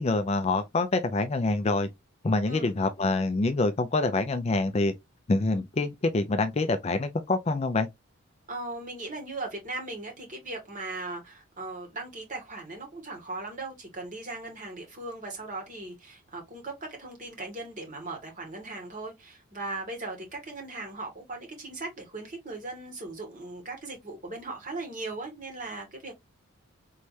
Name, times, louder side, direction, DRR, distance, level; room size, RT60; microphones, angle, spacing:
voice 1, 0.0-1.9 2.2-4.9 5.3-7.9, left 3 dB, 30° left, 0.4 m, -26 dB
voice 2, 8.5-26.2, right 2 dB, 35° right, 2.0 m, -38 dB
4.6 x 3.2 x 2.7 m
head